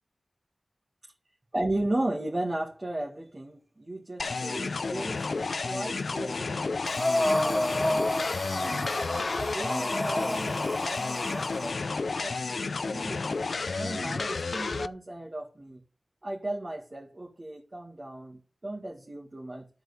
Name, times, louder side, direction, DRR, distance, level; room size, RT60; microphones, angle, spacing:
voice 1, 1.5-8.8 9.5-13.4 13.8-15.8 16.2-19.7, right 1 dB, 45° right, 2.0 m, -36 dB
sound 1, 4.2-14.9, left 4 dB, 80° left, 0.4 m, -31 dB
Breathing, 6.9-11.8, left 1 dB, 25° left, 0.8 m, -30 dB
12.0 x 4.5 x 6.9 m
cardioid pair, 45°, 0 cm